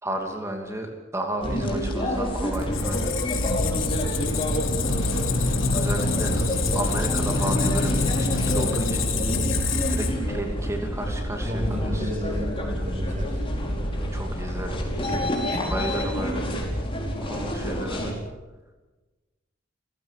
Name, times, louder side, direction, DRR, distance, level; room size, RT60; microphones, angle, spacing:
voice 1, 0.0-3.1 5.7-9.1 9.9-12.1 14.1-14.8 15.7-16.5 17.2-18.1, right 1 dB, 15° right, 2 dB, 2.7 m, -33 dB
sound 1, 1.4-18.1, equal, 30° left, 5.0 m, -28 dB
Squeak, 2.5-10.4, left 3 dB, 90° left, 3.1 m, -26 dB
voice 2, 9.3-9.6 11.4-13.4 15.1-15.2 15.5-15.7, equal, 40° right, 3 dB, 6.6 m, -32 dB
29.5 x 16.0 x 7.5 m, 1.2 s
head